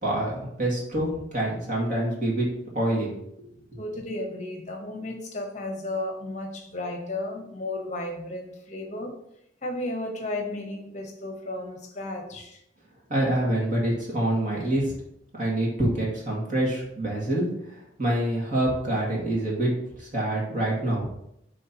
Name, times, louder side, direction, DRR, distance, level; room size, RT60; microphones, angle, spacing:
voice 1, 0.0-2.5 2.7-3.1 3.4-3.5 13.1-14.9 15.4-19.7 20.0-21.1, right 1 dB, 45° right, -3 dB, 2.2 m, -26 dB
voice 2, 3.8-9.2 9.6-12.6, left 2 dB, 40° left, 2 dB, 1.0 m, -34 dB
10.5 x 3.7 x 2.9 m, 0.77 s
head